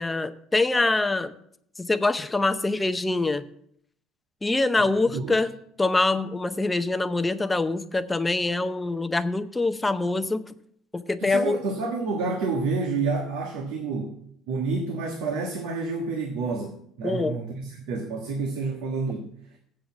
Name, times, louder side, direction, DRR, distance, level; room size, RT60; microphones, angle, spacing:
voice 1, 0.0-1.3 1.8-3.4 4.4-10.4 10.9-11.6 17.0-17.4, left 2 dB, 15° left, 10 dB, 0.7 m, -24 dB
voice 2, 11.2-14.2 14.5-19.3, right 4 dB, 85° right, 2 dB, 1.3 m, -29 dB
7.8 x 6.5 x 7.1 m, 0.70 s
supercardioid pair, 100°, 0 cm